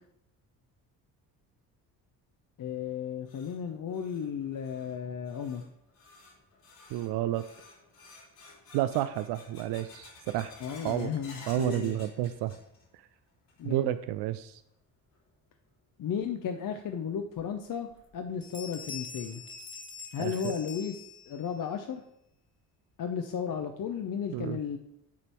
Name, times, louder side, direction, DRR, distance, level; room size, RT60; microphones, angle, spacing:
voice 1, 2.6-5.6 10.6-12.0 13.6-13.9 16.0-17.9 18.1-19.4 20.1-22.0 23.0-24.8, left 7 dB, 40° left, 5 dB, 0.7 m, -34 dB
sound 1, 2.9-13.0 13.3-13.9 14.3-14.4 15.1-15.2 16.8-16.9 17.4-17.5 17.9-18.0 18.5-18.6 19.1-19.5, left 3 dB, 70° left, 3.0 m, -53 dB
voice 2, 6.9-7.4 8.7-10.5 10.8-11.1 11.5-12.5 13.6-14.6 20.2-20.3 24.3-24.6, right 14 dB, 55° right, 13 dB, 0.5 m, -30 dB
sound 2, 17.9-18.1 18.4-21.6, left 5 dB, 25° left, 1.3 m, -44 dB
8.5 x 4.1 x 4.5 m, 0.81 s
hypercardioid pair, 45°, 49 cm